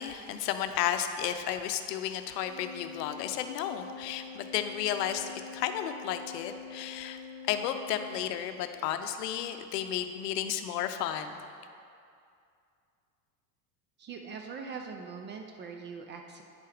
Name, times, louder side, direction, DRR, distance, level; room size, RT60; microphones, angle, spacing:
voice 1, 0.0-7.2 7.5-11.4, left 10 dB, 75° left, 8 dB, 0.7 m, -33 dB
Organ, 2.3-8.9, left 5 dB, 55° right, 1.4 m, -46 dB
voice 2, 14.0-16.4, right 5 dB, 25° right, 3 dB, 0.3 m, -42 dB
9.6 x 5.4 x 3.4 m, 2.4 s
hypercardioid pair, 90°, 49 cm